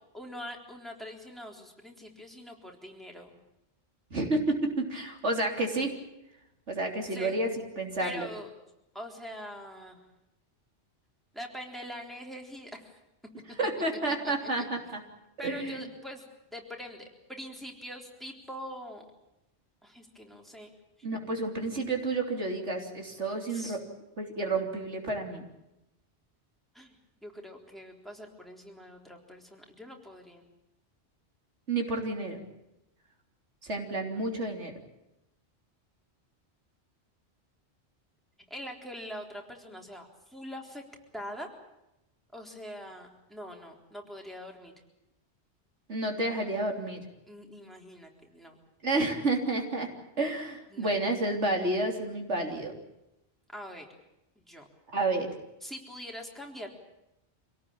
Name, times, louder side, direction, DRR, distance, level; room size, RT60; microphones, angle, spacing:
voice 1, 0.1-3.3 7.1-7.4 8.0-8.5 8.9-10.0 11.3-13.0 14.6-14.7 15.4-19.1 19.8-20.7 23.5-23.8 26.7-30.5 38.5-40.8 41.1-41.5 42.3-44.7 47.3-48.6 50.7-51.0 53.5-53.9 54.4-54.7 55.6-56.7, equal, ahead, 1 dB, 3.8 m, -43 dB
voice 2, 4.1-5.9 6.7-7.5 7.8-8.3 13.6-15.0 15.4-15.8 21.0-23.8 24.2-25.4 31.7-32.4 33.6-34.7 45.9-47.0 48.8-49.9 50.2-52.8 54.9-55.3, right 2 dB, 85° right, 2 dB, 3.7 m, -30 dB
26.0 x 18.0 x 8.8 m, 0.91 s
omnidirectional pair, 1.2 m